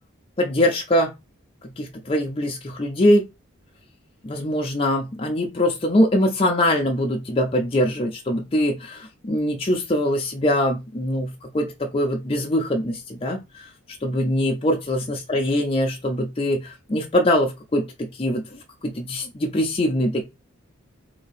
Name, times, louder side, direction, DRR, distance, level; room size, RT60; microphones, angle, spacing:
voice 1, 0.4-1.1 1.6-3.2 4.2-13.6 14.0-20.2, left 1 dB, 25° left, 1 dB, 0.5 m, -23 dB
2.8 x 2.7 x 4.0 m, 0.24 s
head